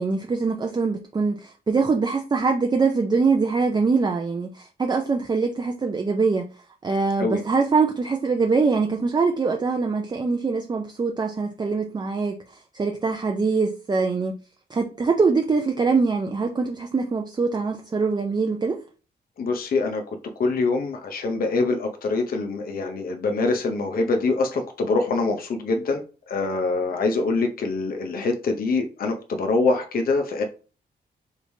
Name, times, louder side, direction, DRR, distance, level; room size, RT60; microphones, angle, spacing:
voice 1, 0.0-6.5 6.8-12.4 12.7-14.3 14.7-18.8, right 4 dB, 25° right, 0.5 m, -23 dB
voice 2, 19.4-20.0 20.4-30.4, left 3 dB, 55° left, 0.7 m, -24 dB
5.0 x 3.2 x 2.7 m
wide cardioid pair, 125°, 18 cm